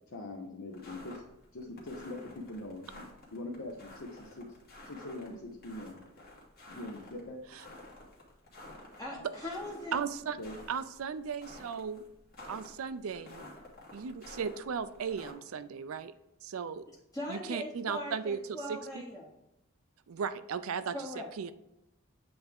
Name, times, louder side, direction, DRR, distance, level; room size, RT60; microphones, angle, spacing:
voice 1, 0.1-1.2 1.5-3.0 3.3-4.5 4.8-6.1 6.7-7.4 9.1-9.2 10.4-10.6, left 2 dB, 65° left, -2 dB, 0.8 m, -42 dB
sound 1, 0.7-15.3, left 1 dB, 45° left, 1.6 m, -51 dB
voice 2, 9.0-10.0 17.1-19.3 20.9-21.3, left 1 dB, 15° left, -4 dB, 0.8 m, -40 dB
voice 3, 9.9-10.4 10.7-12.0 12.5-13.4 13.9-16.1 16.4-16.8 17.3-18.4 18.7-18.8 20.1-21.0 21.4-21.5, right 6 dB, 70° right, 13 dB, 0.4 m, -36 dB
7.8 x 3.4 x 3.5 m, 0.89 s
head